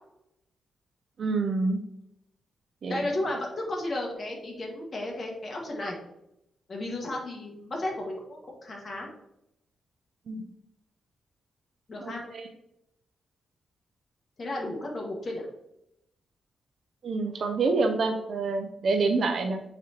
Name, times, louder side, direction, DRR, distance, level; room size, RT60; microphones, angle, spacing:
voice 1, 1.2-1.8 2.8-2.9 10.3-10.4 12.0-12.4 17.0-19.6, right 3 dB, 60° right, 5 dB, 0.5 m, -27 dB
voice 2, 2.9-6.0 6.7-9.1 11.9-12.2 14.4-15.5, left 1 dB, 40° left, 0 dB, 1.6 m, -33 dB
8.5 x 4.3 x 2.9 m, 0.80 s
cardioid pair, 105°, 0 cm